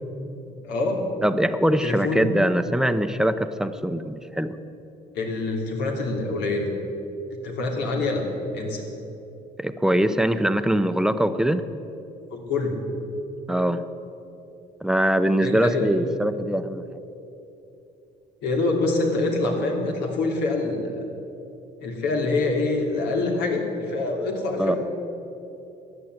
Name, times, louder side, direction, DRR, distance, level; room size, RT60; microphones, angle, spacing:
voice 1, 0.6-1.1 1.8-2.3 5.1-6.7 7.4-8.3 8.5-8.8 12.3-12.9 15.4-15.9 18.4-21.0 21.8-24.8, left 2 dB, 85° left, 1 dB, 3.0 m, -25 dB
voice 2, 1.2-4.5 9.6-11.6 13.5-13.8 14.8-16.8 24.6-24.8, right 1 dB, 5° right, 10 dB, 0.7 m, -22 dB
16.0 x 10.5 x 8.1 m, 2.9 s
cardioid pair, 110°, 17 cm